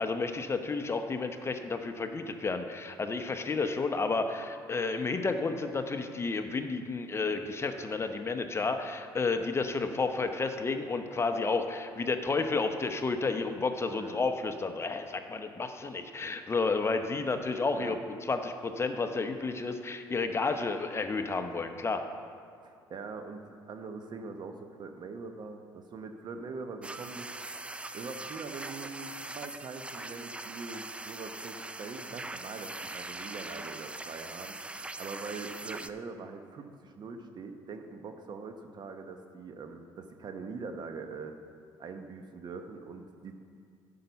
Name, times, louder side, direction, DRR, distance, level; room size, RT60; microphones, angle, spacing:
voice 1, 0.0-18.0 18.3-22.1, left 4 dB, 30° left, 7 dB, 0.8 m, -31 dB
voice 2, 13.9-14.2 17.7-18.0 22.6-27.3 27.9-34.6 35.0-41.3 41.8-43.3, right 4 dB, 50° right, 6 dB, 0.9 m, -43 dB
sound 1, 26.8-35.9, right 2 dB, 10° right, 0.4 m, -42 dB
10.5 x 5.7 x 6.9 m, 2.2 s
supercardioid pair, 80°, 9 cm